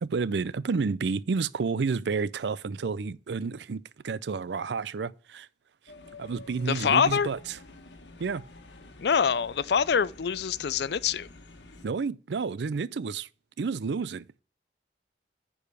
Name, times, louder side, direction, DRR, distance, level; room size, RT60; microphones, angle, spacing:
voice 1, 0.0-5.5 6.2-7.4 8.2-8.4 11.8-13.3 13.6-14.3, right 4 dB, 75° right, 0.5 m, -30 dB
sound 1, 5.9-11.9, left 2 dB, 85° left, 1.4 m, -50 dB
voice 2, 6.7-7.3 9.0-11.3, left 7 dB, 65° left, 0.4 m, -25 dB
9.9 x 4.8 x 4.9 m
head